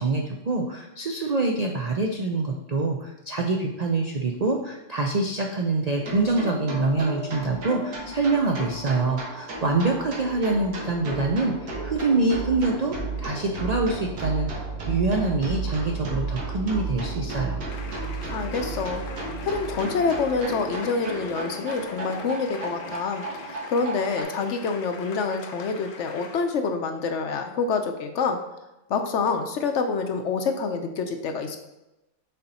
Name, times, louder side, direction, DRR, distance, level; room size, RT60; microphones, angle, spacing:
voice 1, 0.0-17.6, right 3 dB, 65° right, 1 dB, 0.4 m, -25 dB
sound 1, 5.9-24.2, right 3 dB, 85° right, 1.8 m, -33 dB
sound 2, 17.7-26.5, left 4 dB, 85° left, 1.3 m, -43 dB
voice 2, 18.3-19.1 19.4-28.4 28.9-31.6, left 4 dB, 65° left, 6 dB, 0.8 m, -27 dB
6.7 x 4.1 x 4.1 m, 0.96 s
omnidirectional pair, 1.5 m